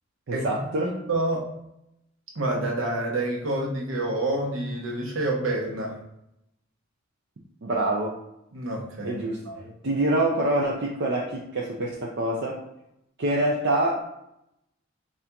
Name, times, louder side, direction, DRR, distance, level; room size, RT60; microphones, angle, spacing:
voice 1, 0.3-0.9 7.6-8.1 9.0-9.4 9.8-12.6 13.2-14.0, right 1 dB, 55° right, -2 dB, 0.5 m, -25 dB
voice 2, 0.8-1.4 2.3-6.0 8.5-9.7, right 2 dB, 75° right, 0 dB, 0.9 m, -28 dB
4.3 x 2.5 x 3.4 m, 0.81 s
head